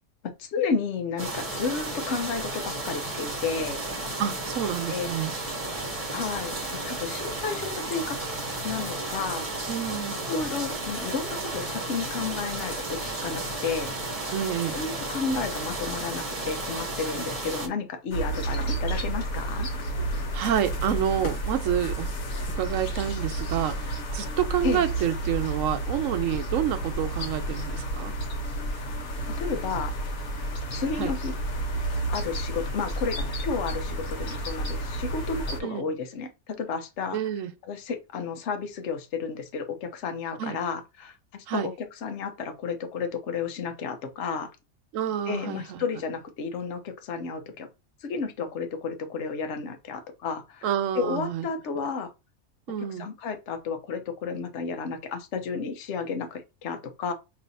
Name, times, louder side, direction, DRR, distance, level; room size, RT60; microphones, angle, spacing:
voice 1, 0.4-3.8 4.9-5.1 6.1-8.2 8.6-9.5 10.3-13.9 14.7-19.7 24.6-24.8 29.4-29.9 30.7-31.3 32.1-36.3 36.6-37.2 37.7-41.7 42.0-44.5 45.3-47.7 48.0-50.7 50.9-52.1 53.0-57.1, left 5 dB, 55° left, 1.0 m, -32 dB
sound 1, 1.2-17.7, right 2 dB, 30° right, 0.9 m, -33 dB
voice 2, 4.2-5.3 9.7-10.2 14.3-14.8 20.3-22.1 22.5-28.1 31.0-31.1 35.6-35.9 37.1-37.5 40.4-40.6 41.5-41.7 44.9-45.8 50.6-51.5 52.7-53.1, right 10 dB, 70° right, 0.9 m, -28 dB
sound 2, 18.1-35.6, right 1 dB, 75° left, 1.5 m, -31 dB
5.3 x 2.8 x 2.7 m
omnidirectional pair, 1.5 m